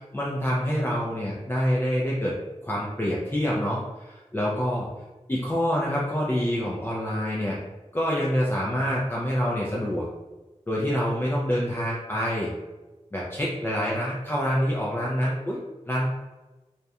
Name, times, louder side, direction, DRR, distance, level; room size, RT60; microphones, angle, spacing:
voice 1, 0.1-2.3 2.6-4.9 5.3-7.6 7.9-10.1 10.7-12.5 13.1-15.6 15.9-16.1, equal, 20° left, -5 dB, 0.4 m, -26 dB
2.8 x 2.1 x 2.3 m, 1.1 s
wide cardioid pair, 65°, 12 cm